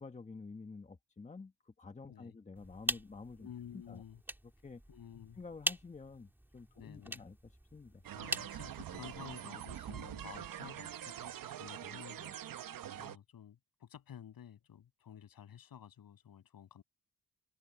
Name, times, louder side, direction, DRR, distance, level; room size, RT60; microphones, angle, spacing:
voice 1, 0.0-3.5 3.7-4.0 4.6-4.8 5.4-7.3 7.7-8.0, left 4 dB, 20° left, 1.3 m, -49 dB
sound 1, 2.6-9.4, right 1 dB, 5° right, 2.2 m, -43 dB
voice 2, 3.4-4.2 4.9-5.4 6.7-7.3 8.1-16.8, left 9 dB, 80° left, 8.0 m, -52 dB
sound 2, 8.0-13.2, right 11 dB, 75° right, 0.9 m, -44 dB
wide cardioid pair, 140°, 35 cm